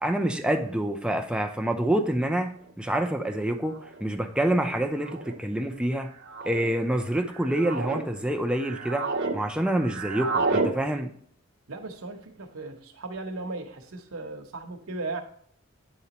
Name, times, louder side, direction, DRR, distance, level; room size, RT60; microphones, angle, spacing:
voice 1, 0.0-6.1 6.4-9.1 9.3-11.1, right 1 dB, 5° right, 4 dB, 0.6 m, -27 dB
sound 1, 2.6-2.7 3.8-4.0 5.0-5.4 6.2-6.7 7.3-8.0 8.5-9.4 9.6-10.7, right 3 dB, 55° right, 0.8 m, -30 dB
voice 2, 11.7-15.2, right 3 dB, 90° right, 4 dB, 1.0 m, -36 dB
9.5 x 4.1 x 2.9 m, 0.62 s
head